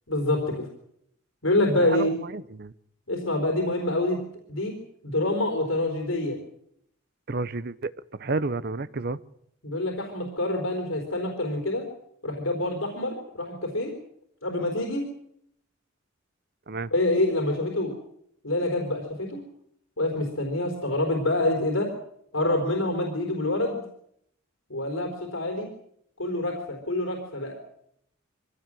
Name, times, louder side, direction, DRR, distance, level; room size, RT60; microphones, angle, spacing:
voice 1, 0.1-0.6 1.4-2.1 3.1-4.2 4.5-4.7 5.0-6.4 9.6-11.8 12.2-13.9 14.4-15.0 16.9-17.9 18.4-19.4 20.0-21.9 22.3-23.8 24.7-25.7 26.2-27.6, left 1 dB, 80° left, 2 dB, 4.1 m, -26 dB
voice 2, 1.8-2.7 7.3-9.2 16.7-16.9, right 3 dB, 50° right, 16 dB, 0.8 m, -31 dB
23.5 x 17.0 x 7.6 m, 0.71 s
head